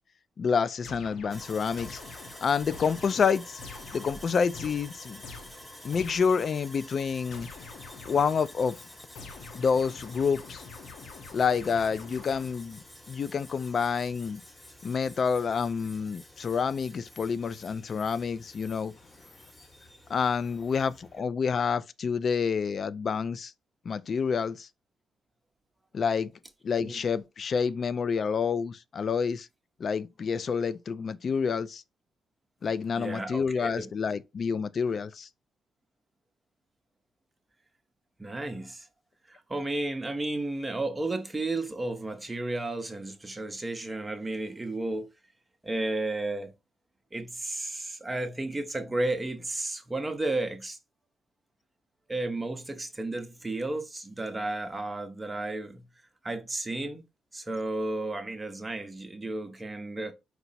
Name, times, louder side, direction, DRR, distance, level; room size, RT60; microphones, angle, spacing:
voice 1, 0.4-2.0 2.4-3.6 3.9-5.2 5.8-7.5 8.1-8.8 9.5-10.6 11.3-14.4 14.8-18.9 20.1-23.5 23.9-24.7 25.9-26.3 26.6-29.5 29.8-31.8 32.6-35.3, left 6 dB, 50° left, 0.3 m, -28 dB
sound 1, 0.8-6.5 7.3-8.6 9.1-12.8, left 4 dB, 70° left, 0.7 m, -46 dB
Sawing, 1.3-21.2, left 1 dB, 10° left, 1.0 m, -49 dB
voice 2, 33.0-33.9 38.2-38.8 39.5-45.1 45.6-46.5 47.1-50.8 52.1-55.8 56.2-57.0 57.3-60.1, right 2 dB, 20° right, 0.7 m, -33 dB
4.5 x 2.0 x 4.0 m
cardioid pair, 90°, 0 cm